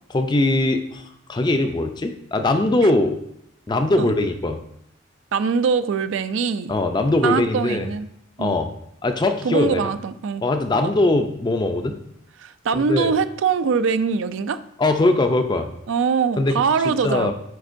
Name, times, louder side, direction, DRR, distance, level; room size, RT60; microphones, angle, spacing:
voice 1, 0.1-1.0 1.3-3.2 3.7-4.6 6.7-7.9 8.4-8.7 9.0-9.9 10.4-12.0 12.7-13.1 14.8-15.7 16.4-16.5 16.8-17.3, left 2 dB, 20° left, 7 dB, 0.4 m, -21 dB
voice 2, 5.3-6.7 7.2-8.1 8.4-8.6 9.4-10.4 10.8-10.9 12.4-14.6 15.9-17.3, right 5 dB, 70° right, 12 dB, 0.3 m, -22 dB
9.2 x 4.4 x 2.5 m, 0.77 s
head